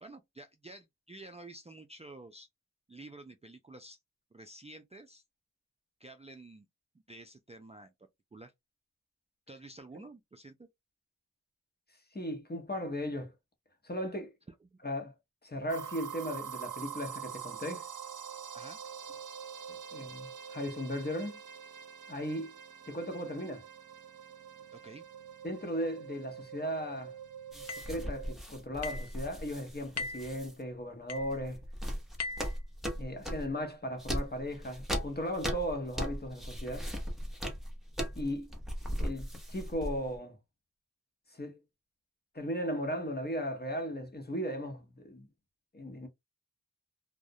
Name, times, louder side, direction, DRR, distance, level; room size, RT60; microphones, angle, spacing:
voice 1, 0.0-2.5 2.9-4.0 4.3-5.2 6.0-6.7 7.1-7.9 8.3-8.5 9.5-10.7 14.5-14.8 18.5-18.8 24.7-25.0, right 2 dB, 20° right, 0.3 m, -50 dB
voice 2, 12.1-13.3 13.8-14.3 14.8-15.1 15.4-17.9 19.7-21.4 22.1-22.5 22.9-23.7 25.4-27.1 27.5-31.6 33.0-36.9 38.2-38.5 39.0-40.4 41.3-41.6 42.3-45.3 45.7-46.1, equal, 30° left, 0.9 m, -37 dB
sound 1, 15.7-28.3, right 8 dB, 70° right, 0.6 m, -45 dB
sound 2, 27.5-30.5 31.2-33.5 34.0-40.2, equal, ahead, 0.8 m, -38 dB
sound 3, 27.7-28.0 28.8-29.1 30.0-30.3 31.1-31.4 32.2-32.6, left 4 dB, 55° left, 0.5 m, -39 dB
2.3 x 2.1 x 2.7 m
wide cardioid pair, 60°, 32 cm